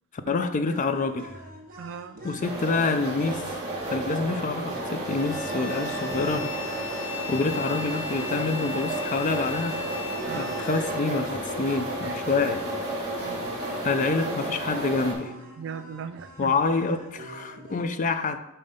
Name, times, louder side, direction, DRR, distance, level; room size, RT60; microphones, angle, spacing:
voice 1, 0.3-1.3 2.2-3.5 3.9-6.5 7.3-9.8 10.4-12.6 13.8-15.3 16.4-18.4, left 4 dB, 35° left, 10 dB, 0.4 m, -27 dB
sound 1, 0.6-17.8, right 1 dB, 40° right, 1.3 m, -45 dB
voice 2, 1.8-2.2 10.2-10.5 12.0-12.2 13.2-13.6 15.6-16.5, right 7 dB, 55° right, 13 dB, 0.3 m, -38 dB
sound 2, 2.4-15.1, right 1 dB, 15° right, 1.8 m, -32 dB
Bowed string instrument, 5.1-11.0, left 5 dB, 50° left, 1.0 m, -38 dB
5.4 x 4.4 x 5.1 m, 0.91 s
head